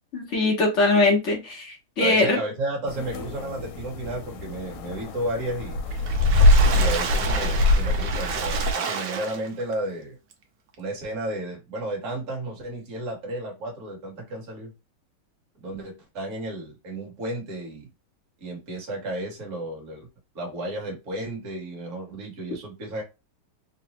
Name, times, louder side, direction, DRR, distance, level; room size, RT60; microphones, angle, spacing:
voice 1, 0.1-2.4, left 2 dB, 60° left, -1 dB, 0.7 m, -21 dB
voice 2, 2.0-5.8 6.7-10.2 10.8-14.7 15.6-17.9 18.4-20.1 20.3-23.0, right 1 dB, 40° right, -1 dB, 1.4 m, -33 dB
sound 1, 2.9-8.7, left 1 dB, 85° left, 1.6 m, -23 dB
Water / Splash splatter, 5.9-9.7 10.3-10.4 10.7-10.8, right 6 dB, 70° right, 1.1 m, -30 dB
3.9 x 2.1 x 2.9 m, 0.26 s
omnidirectional pair, 2.4 m